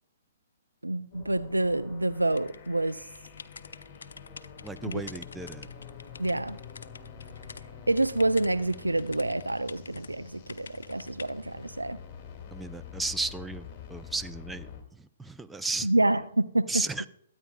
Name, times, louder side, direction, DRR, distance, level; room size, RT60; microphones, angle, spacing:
voice 1, 0.8-3.1 4.8-5.0 6.2-6.6 7.9-12.0 15.8-17.1, right 2 dB, 85° right, 0.4 m, -27 dB
sound 1, 1.1-14.8, left 7 dB, 30° left, 2.1 m, -47 dB
sound 2, 2.4-7.6 8.0-10.1 10.5-11.3, left 5 dB, 65° left, 0.4 m, -47 dB
voice 2, 4.6-5.7 12.5-14.7 15.2-15.9 16.7-17.0, right 3 dB, 5° right, 0.4 m, -34 dB
22.5 x 9.1 x 2.3 m
figure-of-eight pair, 120°, 0 cm